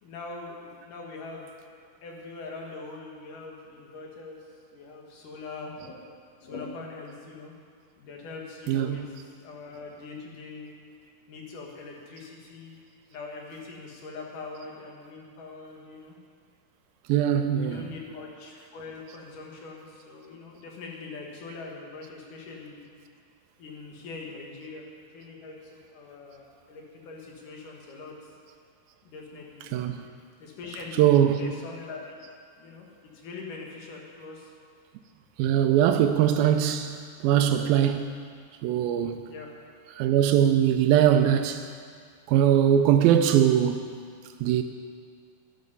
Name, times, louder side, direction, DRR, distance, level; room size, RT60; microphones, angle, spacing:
voice 1, 0.0-1.5 2.0-4.4 4.7-7.5 8.0-9.0 9.4-10.7 11.3-12.8 13.1-16.1 17.6-22.8 23.6-24.9 25.1-25.6 25.9-28.2 29.0-29.7 30.4-32.2 32.6-32.9 33.1-34.5 35.4-35.5 39.3-39.5, left 3 dB, 65° left, 3.1 m, -42 dB
voice 2, 8.7-9.0 17.1-17.9 29.6-30.0 30.7-31.5 35.4-37.0 37.2-38.1 38.6-39.3 39.9-41.6 42.3-43.9 44.4-44.6, right 10 dB, 85° right, 2.4 m, -21 dB
13.0 x 11.5 x 5.5 m
omnidirectional pair, 4.2 m